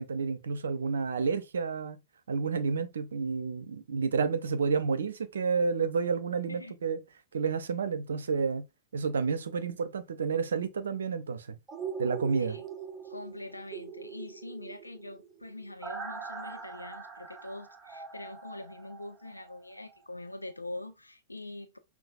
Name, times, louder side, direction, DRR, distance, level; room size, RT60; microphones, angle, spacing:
voice 1, 0.0-2.0 2.3-7.0 7.3-8.7 8.9-11.6 12.0-12.6, right 5 dB, 70° right, 0.5 m, -30 dB
sound 1, 11.7-19.6 19.9-20.0, right 6 dB, 20° right, 0.6 m, -42 dB
voice 2, 13.0-21.8, left 2 dB, 85° left, 0.5 m, -43 dB
5.6 x 2.2 x 2.4 m
figure-of-eight pair, 100°, 0 cm